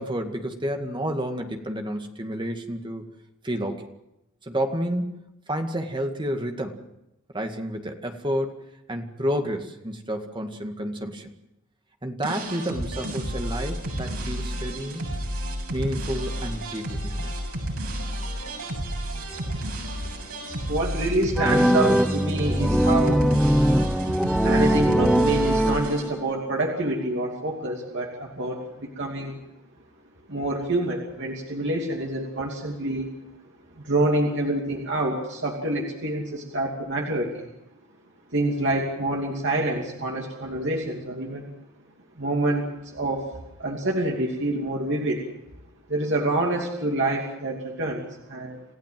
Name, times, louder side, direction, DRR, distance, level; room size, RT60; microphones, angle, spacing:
voice 1, 0.0-3.0 3.4-3.9 4.4-6.8 7.3-8.5 8.9-11.3 12.0-15.0 15.7-17.3, equal, 20° right, 4 dB, 2.0 m, -30 dB
sound 1, 12.2-26.0, equal, 85° right, 7.1 m, -31 dB
voice 2, 20.7-23.2 24.1-24.2 24.4-29.4 30.3-33.1 33.8-37.5 38.3-41.5 42.2-43.3 43.6-45.2 45.9-48.6, right 2 dB, 55° right, 0 dB, 2.8 m, -27 dB
sound 2, 21.3-26.3, equal, ahead, 0.8 m, -21 dB
28.0 x 15.5 x 7.7 m, 0.88 s
head